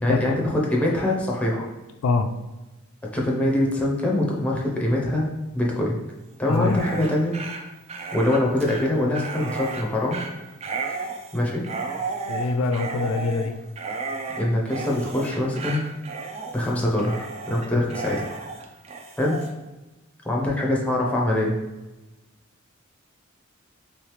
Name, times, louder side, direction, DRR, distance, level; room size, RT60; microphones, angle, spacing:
voice 1, 0.0-1.6 3.1-5.3 5.5-6.0 6.4-7.4 8.1-10.2 11.3-11.6 14.4-15.8 16.5-18.2 19.2-19.4 20.2-21.5, left 1 dB, 5° left, -3 dB, 0.6 m, -23 dB
voice 2, 6.5-6.8 12.3-13.5 17.7-17.8, left 3 dB, 80° left, 8 dB, 0.3 m, -24 dB
Dog, 6.5-19.5, right 4 dB, 30° right, 0.4 m, -34 dB
3.2 x 3.2 x 3.1 m, 1.1 s
head